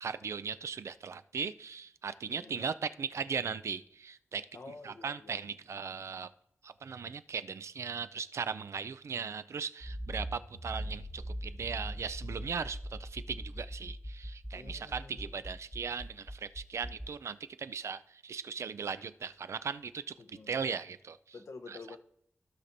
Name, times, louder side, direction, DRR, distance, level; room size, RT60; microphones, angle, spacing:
voice 1, 0.0-4.5 4.8-6.3 6.6-21.2 21.7-21.8, right 6 dB, 80° right, 14 dB, 0.4 m, -38 dB
voice 2, 2.3-2.6 4.5-5.4 14.5-15.4 20.2-20.5 21.3-22.0, left 3 dB, 85° left, 5 dB, 0.8 m, -49 dB
Accelerating revving vroom, 9.8-17.1, equal, 5° left, 0.8 m, -41 dB
15.5 x 5.8 x 2.6 m, 0.72 s
wide cardioid pair, 95°, 5 cm